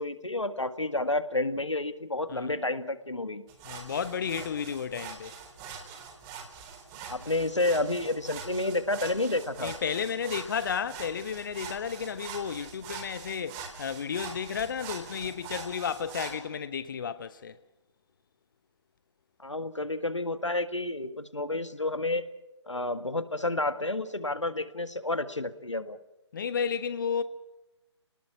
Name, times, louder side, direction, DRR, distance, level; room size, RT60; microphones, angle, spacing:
voice 1, 0.0-3.4 7.1-9.7 19.4-22.3 22.7-26.0, left 2 dB, 85° left, 1.8 m, -30 dB
sound 1, 3.5-16.3, right 6 dB, 20° right, 3.9 m, -43 dB
voice 2, 3.6-5.4 9.6-17.6 26.3-27.2, left 7 dB, 45° left, 0.9 m, -32 dB
28.5 x 19.5 x 6.1 m
figure-of-eight pair, 140°, 15 cm